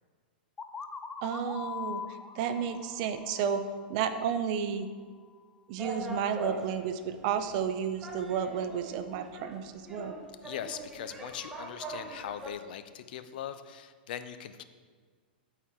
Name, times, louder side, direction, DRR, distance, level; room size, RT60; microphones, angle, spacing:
sound 1, 0.6-4.3, left 6 dB, 15° left, 0.4 m, -42 dB
voice 1, 1.2-4.9 5.7-10.1, right 7 dB, 50° right, 10 dB, 0.6 m, -32 dB
sound 2, 5.8-12.5, right 1 dB, 10° right, 0.9 m, -42 dB
voice 2, 10.4-14.6, left 9 dB, 65° left, 11 dB, 0.5 m, -40 dB
12.5 x 4.5 x 3.7 m, 1.6 s
hypercardioid pair, 130°, 5 cm